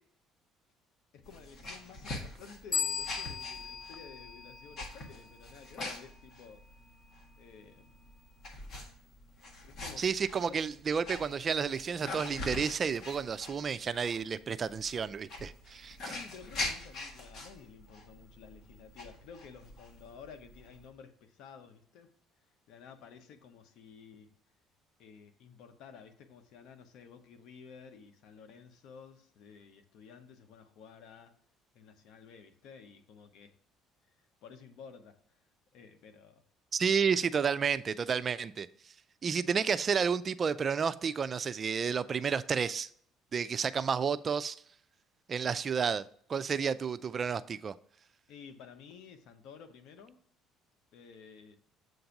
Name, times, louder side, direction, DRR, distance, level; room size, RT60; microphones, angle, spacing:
voice 1, 1.1-6.6 7.4-7.9 9.6-10.0 10.4-10.6 16.0-22.1 22.7-24.3 25.0-31.4 31.7-33.6 34.4-35.4 35.7-36.4 48.3-50.2 50.9-51.6, left 6 dB, 70° left, 0.9 m, -52 dB
sound 1, 1.2-20.9, left 2 dB, 50° left, 1.6 m, -44 dB
sound 2, 2.7-5.2, left 6 dB, 30° left, 0.4 m, -37 dB
voice 2, 10.0-16.1 36.7-38.7 39.2-42.9 43.3-44.6 45.3-47.7, right 6 dB, 40° right, 0.3 m, -31 dB
7.8 x 2.6 x 5.8 m
supercardioid pair, 90°, 0 cm